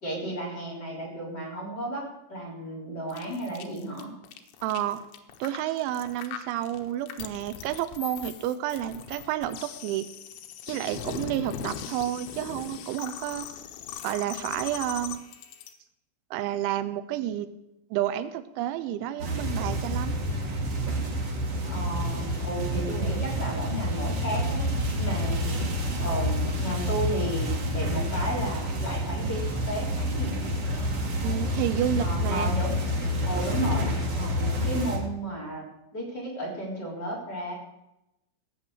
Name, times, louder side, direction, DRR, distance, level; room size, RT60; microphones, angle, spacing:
voice 1, 0.0-4.1 21.7-24.6 25.0-30.5 31.2-31.4 32.0-32.8 33.2-35.6 35.9-37.6, right 1 dB, 25° left, -3 dB, 3.8 m, -33 dB
sound 1, 3.1-15.7, left 8 dB, 85° left, 3.5 m, -40 dB
voice 2, 4.6-5.0 5.4-10.1 10.7-13.5 14.0-15.2 16.3-17.5 17.9-20.2 31.2-32.5, right 12 dB, 90° right, 12 dB, 3.2 m, -30 dB
sound 2, 19.2-35.0, equal, 40° right, 2.4 m, -28 dB
17.5 x 6.3 x 8.0 m, 0.89 s
omnidirectional pair, 5.3 m